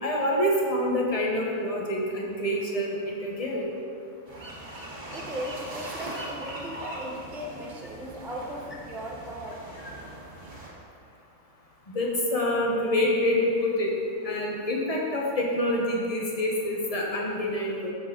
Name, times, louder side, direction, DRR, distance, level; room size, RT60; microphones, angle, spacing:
voice 1, 0.0-3.7 11.9-13.9 14.2-17.9, left 1 dB, 25° left, -2 dB, 1.0 m, -26 dB
sound 1, 4.3-10.7, right 1 dB, 65° right, 2.3 m, -40 dB
voice 2, 5.1-9.7, equal, ahead, -3 dB, 0.5 m, -37 dB
7.7 x 6.6 x 3.8 m, 2.4 s
omnidirectional pair, 1.6 m